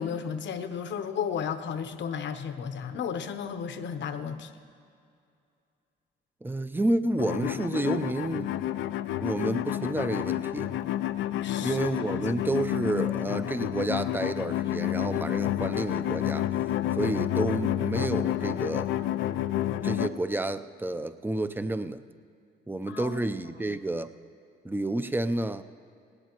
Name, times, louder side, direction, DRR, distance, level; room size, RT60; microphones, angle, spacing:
voice 1, 0.0-4.5 11.4-11.8 12.2-12.3 22.9-23.2, left 7 dB, 65° left, 9 dB, 0.9 m, -33 dB
voice 2, 6.4-8.5 9.2-10.7 11.6-16.5 17.0-18.9 19.8-22.0 22.7-24.1 24.6-25.6, right 2 dB, 10° right, 11 dB, 0.5 m, -30 dB
sound 1, 7.2-20.1, left 12 dB, 80° left, 0.5 m, -29 dB
18.0 x 17.5 x 3.0 m, 2.5 s
cardioid pair, 90°, 20 cm